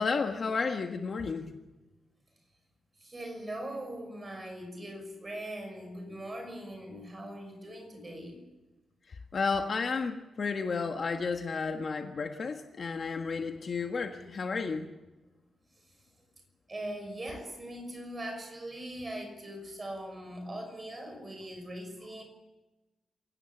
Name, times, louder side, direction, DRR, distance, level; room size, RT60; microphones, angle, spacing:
voice 1, 0.0-1.5 9.1-14.9, left 4 dB, 40° left, 4 dB, 1.5 m, -32 dB
voice 2, 3.0-8.4 16.7-22.2, right 1 dB, 20° right, 4 dB, 6.1 m, -41 dB
27.5 x 17.5 x 7.3 m, 1.1 s
wide cardioid pair, 175°, 0 cm